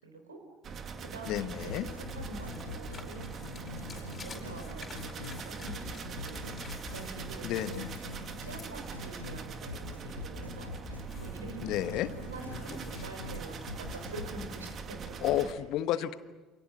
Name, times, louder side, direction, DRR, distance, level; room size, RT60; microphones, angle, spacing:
voice 1, 0.0-0.4 1.0-3.3 3.9-6.6 6.9-7.8 8.4-10.7 11.2-12.0 12.3-15.4 16.0-16.1, right 2 dB, 80° right, 6 dB, 4.2 m, -46 dB
sound 1, 0.6-15.5, right 5 dB, 40° right, 2.3 m, -42 dB
sound 2, 0.9-15.4, left 4 dB, 30° left, 4.7 m, -53 dB
voice 2, 1.3-1.9 7.4-7.9 11.6-12.1 15.2-16.1, left 12 dB, 55° left, 13 dB, 1.1 m, -31 dB
sound 3, 1.7-5.4 5.7-9.4 9.7-13.4 13.7-14.5, left 4 dB, 85° left, 2.0 m, -44 dB
29.0 x 28.5 x 6.2 m, 1.3 s
figure-of-eight pair, 60°, 0 cm